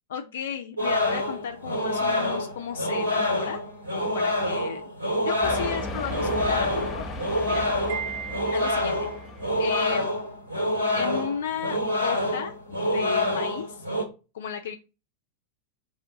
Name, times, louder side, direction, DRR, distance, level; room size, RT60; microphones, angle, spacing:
voice 1, 0.1-3.6 3.9-4.8 5.2-7.0 7.4-7.6 8.5-9.0 9.6-10.1 10.9-13.8 14.3-14.8, left 8 dB, 60° left, 5 dB, 0.4 m, -34 dB
sound 1, 0.8-14.0, left 1 dB, 85° right, 2.2 m, -27 dB
sound 2, 5.4-9.9, left 2 dB, 25° left, 0.8 m, -36 dB
Wind chime, 7.9-9.3, right 9 dB, 55° right, 0.3 m, -37 dB
3.4 x 2.5 x 3.7 m, 0.30 s
figure-of-eight pair, 90°, 0 cm